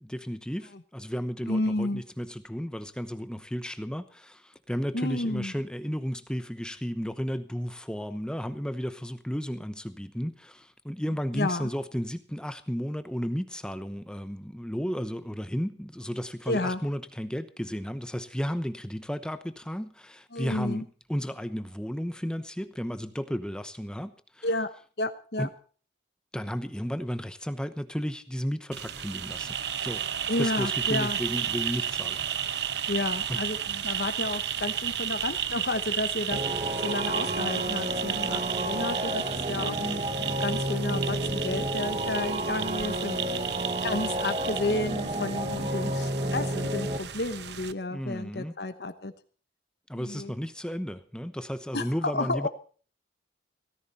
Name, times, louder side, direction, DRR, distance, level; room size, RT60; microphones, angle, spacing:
voice 1, 0.0-24.5 25.4-25.5 26.3-32.8 33.3-33.4 38.7-38.8 47.9-48.5 49.9-52.5, equal, 5° left, 10 dB, 0.9 m, -34 dB
voice 2, 1.5-2.0 4.9-5.5 11.3-11.7 16.5-16.8 20.3-20.8 24.4-24.7 25.0-25.5 30.3-31.2 32.9-43.2 43.8-49.1 50.0-50.3 51.7-52.5, left 2 dB, 60° left, 9 dB, 1.1 m, -31 dB
sound 1, 28.7-47.7, right 9 dB, 70° right, 0.9 m, -33 dB
sound 2, 36.3-47.0, right 1 dB, 35° right, 1.2 m, -31 dB
17.0 x 14.5 x 4.2 m, 0.42 s
head